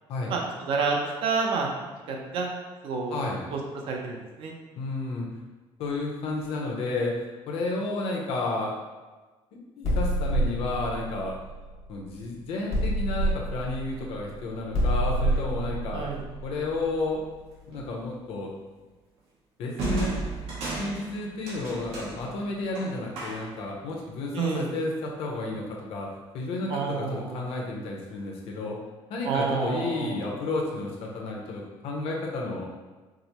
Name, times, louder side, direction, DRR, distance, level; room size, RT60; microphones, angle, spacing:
voice 1, 0.3-1.7 2.1-2.5 2.8-3.2 3.5-3.6 3.9-4.5 15.9-16.3 24.3-24.7 26.7-27.5 29.2-30.3, right 4 dB, 55° right, 0 dB, 0.6 m, -29 dB
voice 2, 3.1-3.4 4.8-5.3 5.8-8.7 9.5-11.4 11.9-16.0 16.4-17.2 17.7-18.5 19.6-20.2 20.8-26.1 26.3-28.8 29.1-32.7, left 2 dB, 70° left, -1 dB, 0.7 m, -32 dB
sound 1, 9.8-12.2 12.7-17.4, right 1 dB, 90° left, 1.4 m, -28 dB
sound 2, 17.7-18.0 19.8-23.7, right 2 dB, 75° right, 1.0 m, -34 dB
4.7 x 2.0 x 2.9 m, 1.2 s
cardioid pair, 165°, 11 cm